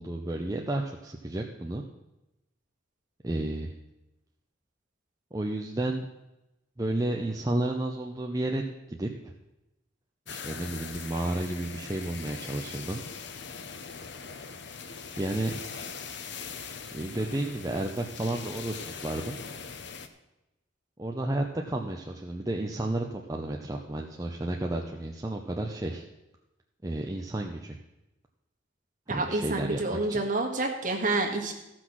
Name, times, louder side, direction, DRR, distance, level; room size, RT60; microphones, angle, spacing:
voice 1, 0.0-1.8 3.2-3.7 5.3-6.0 6.8-9.1 10.3-13.0 15.2-15.6 16.9-18.7 19.0-19.4 21.0-26.0 26.8-27.8 29.1-30.2, right 1 dB, 15° right, 1 dB, 0.6 m, -32 dB
sound 1, 10.3-20.1, left 5 dB, 60° left, 0.8 m, -41 dB
voice 2, 29.1-31.5, right 2 dB, 40° right, 2 dB, 1.6 m, -28 dB
14.5 x 6.1 x 6.1 m, 0.95 s
head